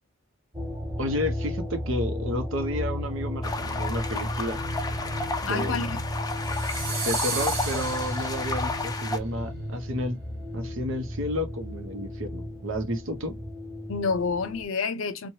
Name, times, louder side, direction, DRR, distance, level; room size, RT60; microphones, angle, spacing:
sound 1, 0.5-14.6, equal, 15° right, 0.7 m, -34 dB
voice 1, 1.0-4.6 5.4-5.8 7.0-10.2 10.5-13.3, left 1 dB, 70° right, 0.7 m, -31 dB
sound 2, 3.4-9.2, left 3 dB, 20° left, 0.3 m, -32 dB
voice 2, 5.5-6.0 13.9-15.3, left 4 dB, 70° left, 0.5 m, -28 dB
sound 3, 6.3-8.8, right 5 dB, 50° right, 1.2 m, -34 dB
3.0 x 2.2 x 2.7 m
head